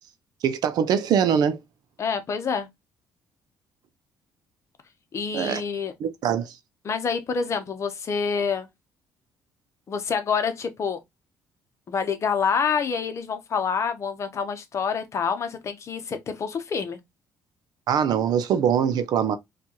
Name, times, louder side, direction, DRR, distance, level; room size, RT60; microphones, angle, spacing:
voice 1, 0.4-1.6 5.3-5.6 6.0-6.6 17.9-19.4, right 8 dB, 70° right, 0.6 m, -23 dB
voice 2, 2.0-2.7 5.1-5.9 6.8-8.7 9.9-11.0 11.9-17.0, left 6 dB, 45° left, 0.8 m, -27 dB
4.4 x 2.4 x 2.9 m
cardioid pair, 110°, 7 cm